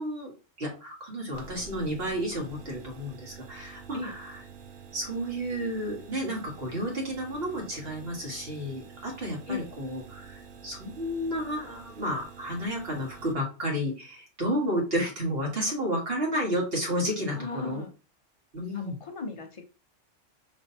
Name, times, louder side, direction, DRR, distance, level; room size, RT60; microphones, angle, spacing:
voice 1, 0.0-4.4 4.9-17.8 18.5-19.0, equal, 50° right, 1.8 m, -31 dB
sound 1, 1.3-13.3, right 6 dB, 80° right, 1.0 m, -48 dB
voice 2, 17.4-17.9 18.7-19.6, left 4 dB, 35° left, 0.6 m, -36 dB
5.5 x 3.2 x 2.7 m
omnidirectional pair, 1.3 m